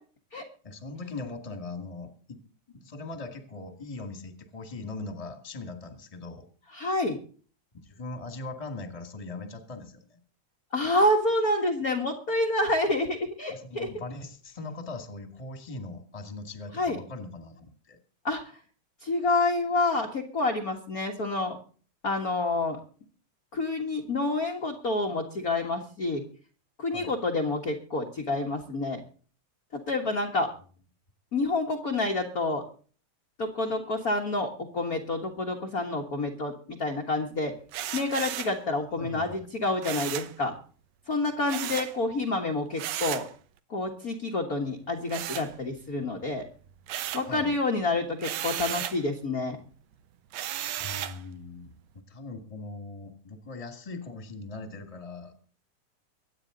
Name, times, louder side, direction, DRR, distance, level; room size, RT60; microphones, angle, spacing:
voice 1, 0.6-2.4 2.7-6.4 7.8-10.2 13.5-18.0 26.9-27.1 38.7-39.5 47.3-47.6 50.8-51.7 52.1-55.3, left 3 dB, 15° left, 7 dB, 1.7 m, -40 dB
voice 2, 6.7-7.2 10.7-13.9 16.7-17.0 18.2-18.4 19.0-21.6 22.0-22.8 23.5-26.2 26.8-29.0 29.7-30.5 31.3-32.6 33.4-37.5 37.9-40.5 41.1-43.3 43.7-46.4 47.1-49.6, left 2 dB, 40° left, 2 dB, 1.5 m, -28 dB
sound 1, 37.7-38.6 39.8-40.4 41.5-42.0 42.8-43.3 45.1-46.0 46.3-47.3 48.2-49.0 50.3-51.2, right 12 dB, 70° right, 1.9 m, -34 dB
24.0 x 9.3 x 3.9 m, 0.41 s
omnidirectional pair, 3.5 m